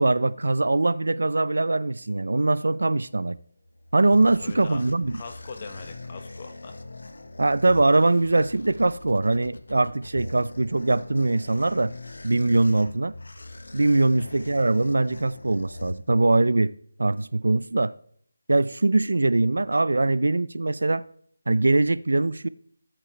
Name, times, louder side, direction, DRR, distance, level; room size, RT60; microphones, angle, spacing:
voice 1, 0.0-3.4 3.9-5.2 7.4-11.9 12.2-13.1 13.7-16.7 17.0-17.9 18.5-21.0 21.5-22.5, right 2 dB, 80° right, 0.4 m, -22 dB
sound 1, 3.5-16.5, left 2 dB, 75° left, 1.0 m, -42 dB
voice 2, 4.4-4.8 5.1-6.8 14.2-14.4, left 4 dB, 30° left, 1.1 m, -41 dB
16.0 x 8.3 x 3.3 m
figure-of-eight pair, 170°, 0 cm